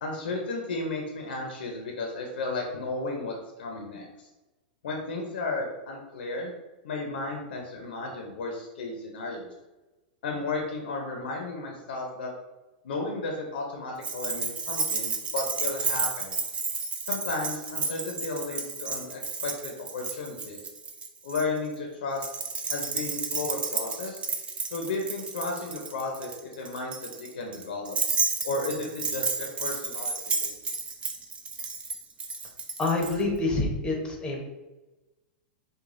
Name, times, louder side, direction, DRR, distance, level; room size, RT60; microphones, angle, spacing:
voice 1, 0.0-4.3 4.8-6.5 6.8-9.5 10.2-12.3 12.8-16.4 17.1-20.6 21.2-22.2 22.7-24.2 24.7-28.0 28.4-30.1 30.4-30.6, left 3 dB, 80° left, 1 dB, 0.7 m, -34 dB
Keys jangling, 14.0-21.4 22.2-33.2, right 4 dB, 20° right, 0.4 m, -32 dB
voice 2, 32.8-34.4, left 2 dB, 15° left, 0 dB, 0.9 m, -27 dB
4.8 x 2.3 x 2.6 m, 1.1 s
hypercardioid pair, 120°, 5 cm